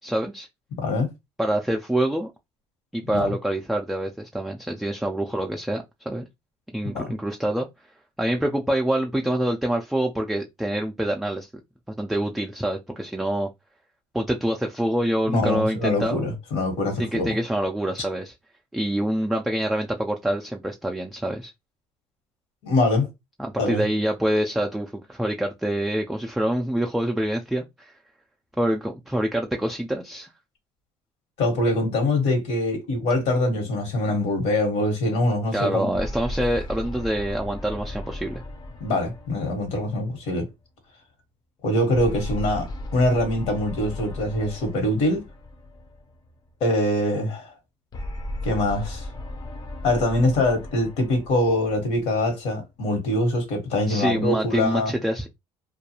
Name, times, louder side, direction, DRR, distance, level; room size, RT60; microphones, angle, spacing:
voice 1, 0.0-0.5 1.4-2.3 2.9-6.3 6.7-7.7 8.2-11.5 12.0-13.5 14.1-16.2 17.0-18.3 18.7-21.5 23.4-27.9 28.6-30.3 35.5-38.4 53.9-55.3, right 1 dB, ahead, 0.3 m, -26 dB
voice 2, 0.8-1.1 3.1-3.3 6.9-7.1 15.3-17.4 22.6-23.1 23.6-23.8 31.4-35.9 38.8-40.5 41.6-45.2 46.6-47.5 48.4-49.1 49.8-54.9, left 1 dB, 75° left, 1.2 m, -23 dB
sound 1, 35.9-40.5 41.9-46.3 47.9-52.5, left 1 dB, 35° left, 0.6 m, -36 dB
2.3 x 2.2 x 2.8 m
cardioid pair, 100°, 12 cm